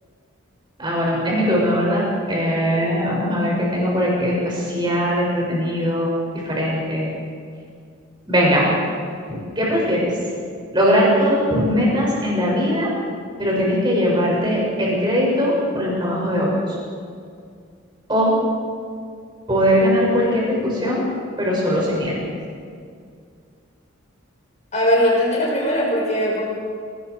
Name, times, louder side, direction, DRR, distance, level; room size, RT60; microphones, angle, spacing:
voice 1, 0.8-6.1 6.5-7.1 8.3-8.7 9.3-10.1 10.7-12.9 13.4-16.5 18.1-18.3 19.5-21.0 21.4-22.2, equal, 20° right, -4 dB, 7.0 m, -20 dB
voice 2, 24.7-26.4, equal, 35° left, -3 dB, 5.9 m, -20 dB
29.5 x 19.5 x 4.9 m, 2.2 s
head